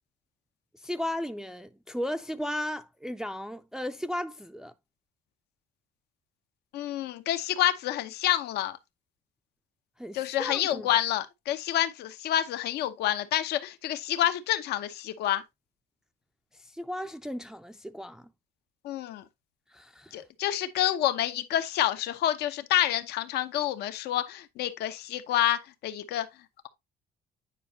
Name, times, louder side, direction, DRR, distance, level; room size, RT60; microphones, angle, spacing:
voice 1, 0.8-4.7 10.0-10.9 16.6-18.3 19.7-20.2, left 1 dB, 5° right, 0.4 m, -35 dB
voice 2, 6.7-8.8 10.1-15.4 18.8-19.2 20.1-26.3, left 12 dB, 80° left, 0.8 m, -28 dB
9.2 x 5.1 x 2.7 m
cardioid pair, 110°, 17 cm